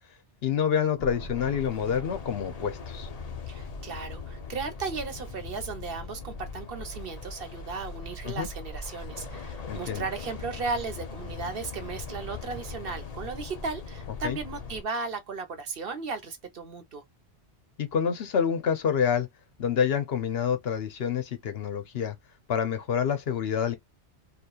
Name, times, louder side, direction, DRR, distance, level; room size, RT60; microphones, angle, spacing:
voice 1, 0.4-3.1 8.2-8.5 9.7-10.0 14.2-14.4 17.8-19.3 19.6-22.1 22.5-23.8, left 7 dB, 65° left, 0.9 m, -27 dB
sound 1, 1.0-14.8, left 4 dB, 45° left, 0.6 m, -40 dB
voice 2, 3.5-17.0, right 4 dB, 60° right, 1.0 m, -35 dB
3.0 x 2.4 x 2.2 m
omnidirectional pair, 1.1 m